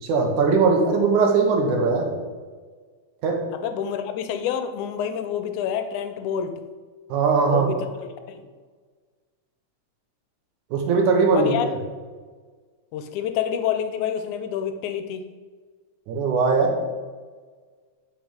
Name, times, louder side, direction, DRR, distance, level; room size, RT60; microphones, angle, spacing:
voice 1, 0.0-2.1 3.2-3.4 7.1-7.7 10.7-11.8 16.1-16.7, right 4 dB, 80° right, 2 dB, 2.7 m, -20 dB
voice 2, 3.5-6.6 7.5-8.4 11.3-11.7 12.9-15.3, left 8 dB, 80° left, 8 dB, 2.1 m, -28 dB
9.0 x 6.1 x 5.1 m, 1.5 s
omnidirectional pair, 3.4 m